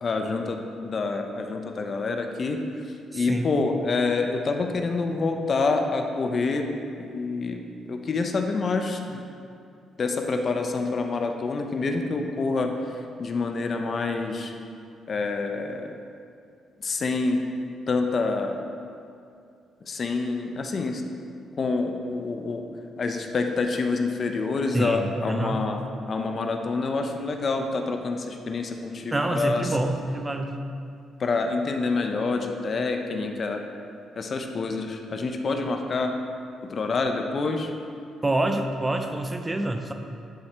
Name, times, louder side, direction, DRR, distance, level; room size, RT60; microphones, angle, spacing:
voice 1, 0.0-2.6 3.1-6.7 7.0-7.6 7.9-9.2 10.0-14.5 15.1-16.0 16.8-17.4 17.9-18.6 19.9-21.0 21.6-22.6 23.0-25.8 26.1-29.6 31.2-33.6 34.2-36.1 36.6-37.7, left 3 dB, 45° left, 4 dB, 0.6 m, -27 dB
voice 2, 3.1-3.6 24.7-25.6 29.1-30.6 38.2-39.9, right 2 dB, 20° right, 5 dB, 0.5 m, -27 dB
11.0 x 4.3 x 3.3 m, 2.4 s
cardioid pair, 90°, 0 cm